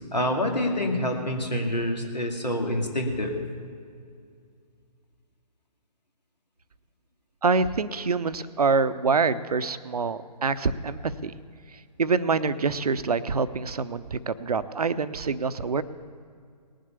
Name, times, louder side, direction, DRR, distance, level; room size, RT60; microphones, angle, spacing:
voice 1, 0.1-3.4, left 1 dB, 80° left, 2 dB, 2.2 m, -27 dB
voice 2, 7.4-11.4 12.0-15.8, right 4 dB, 65° right, 13 dB, 0.6 m, -26 dB
19.0 x 7.6 x 6.9 m, 2.2 s
figure-of-eight pair, 140°, 21 cm